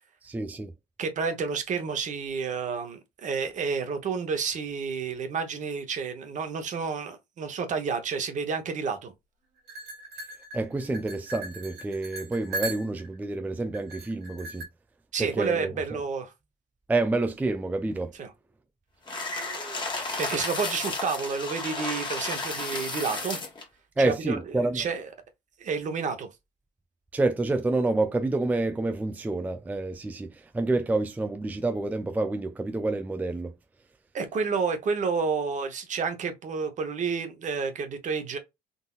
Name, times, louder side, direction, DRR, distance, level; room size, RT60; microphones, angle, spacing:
voice 1, 0.2-0.7 10.5-14.7 15.2-15.8 16.9-18.1 24.0-24.9 27.1-33.5, right 2 dB, 10° right, 0.4 m, -28 dB
voice 2, 1.0-9.1 15.1-16.3 18.2-18.3 19.4-19.8 20.2-23.4 24.0-24.4 24.7-25.1 25.6-26.3 34.1-38.4, right 5 dB, 45° right, 0.9 m, -30 dB
sound 1, 9.7-13.2 13.7-14.6, right 2 dB, 70° right, 1.5 m, -38 dB
sound 2, 19.1-23.6, left 3 dB, 25° left, 1.3 m, -33 dB
3.8 x 2.5 x 2.3 m
cardioid pair, 110°, 17 cm